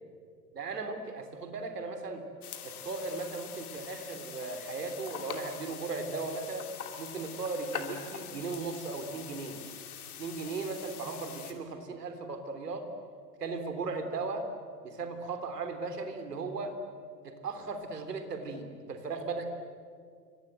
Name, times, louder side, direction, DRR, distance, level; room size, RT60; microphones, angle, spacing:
voice 1, 0.5-2.2 2.6-6.7 7.0-9.6 10.2-12.9 13.4-14.5 14.8-16.8 17.2-19.4, right 3 dB, 70° right, 7 dB, 3.5 m, -37 dB
sound 1, 2.4-11.5, left 8 dB, 65° left, 3.0 m, -44 dB
29.5 x 24.5 x 7.9 m, 2.2 s
figure-of-eight pair, 85°, 48 cm